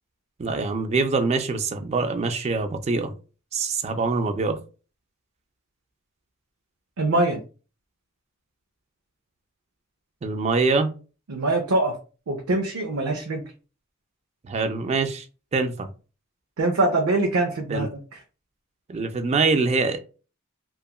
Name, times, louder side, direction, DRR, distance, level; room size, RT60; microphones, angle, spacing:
voice 1, 0.4-3.1 3.5-4.6 10.2-10.9 14.5-15.3 15.5-15.9 17.7-17.9 18.9-20.0, right 4 dB, 30° right, 7 dB, 0.3 m, -24 dB
voice 2, 7.0-7.4 11.3-12.0 12.3-13.4 16.6-18.0, right 2 dB, 90° right, 2 dB, 0.5 m, -23 dB
2.8 x 2.3 x 2.3 m, 0.35 s
head